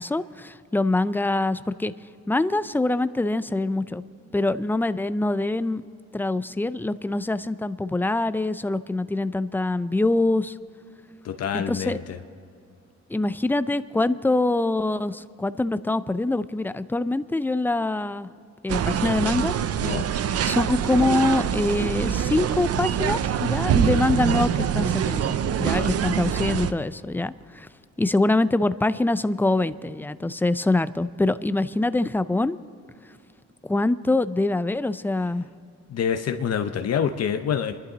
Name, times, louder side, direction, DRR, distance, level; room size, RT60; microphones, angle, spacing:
voice 1, 0.0-1.9 2.3-4.0 4.3-5.8 6.1-10.5 11.5-12.0 13.1-18.3 18.6-19.5 20.4-25.3 25.6-27.7 28.0-32.6 33.6-35.5, left 2 dB, 5° left, 14 dB, 0.4 m, -24 dB
voice 2, 11.2-12.2 19.8-20.0 25.8-26.1 35.9-37.7, left 8 dB, 55° left, 6 dB, 0.9 m, -27 dB
sound 1, 18.7-26.7, right 9 dB, 55° right, 0.6 m, -24 dB
26.5 x 11.5 x 4.0 m, 2.6 s
cardioid pair, 90°, 30 cm